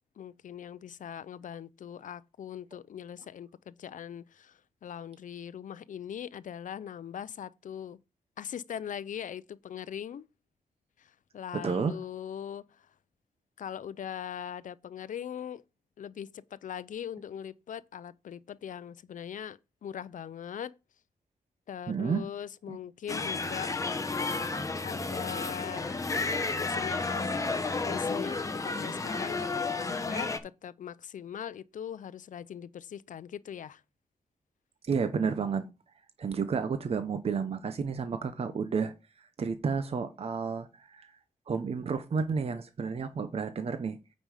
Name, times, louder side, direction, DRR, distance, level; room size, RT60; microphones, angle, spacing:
voice 1, 0.2-8.0 8.4-10.3 11.0-12.9 13.6-15.6 16.0-20.7 21.7-23.7 24.8-26.0 26.6-27.4 27.8-29.5 29.8-33.8, left 9 dB, 75° left, 0.5 m, -41 dB
voice 2, 11.5-12.0 21.9-22.2 22.7-22.8 34.9-35.7 36.2-38.9 39.2-41.1 41.5-44.0, right 5 dB, 50° right, 0.7 m, -31 dB
sound 1, 23.1-30.4, left 3 dB, 25° left, 0.8 m, -32 dB
9.0 x 5.2 x 4.9 m
wide cardioid pair, 160°, 13 cm